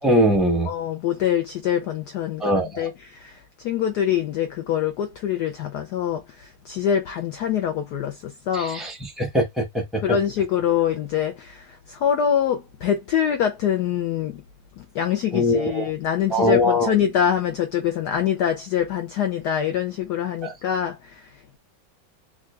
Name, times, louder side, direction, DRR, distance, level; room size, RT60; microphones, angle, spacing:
voice 1, 0.0-0.7 2.4-2.9 8.5-10.2 15.3-15.9 16.3-16.9 20.4-20.5, equal, ahead, 0.3 m, -22 dB
voice 2, 0.7-8.9 10.0-14.4 14.8-21.6, left 9 dB, 90° left, 0.9 m, -25 dB
3.7 x 2.4 x 3.2 m
omnidirectional pair, 2.3 m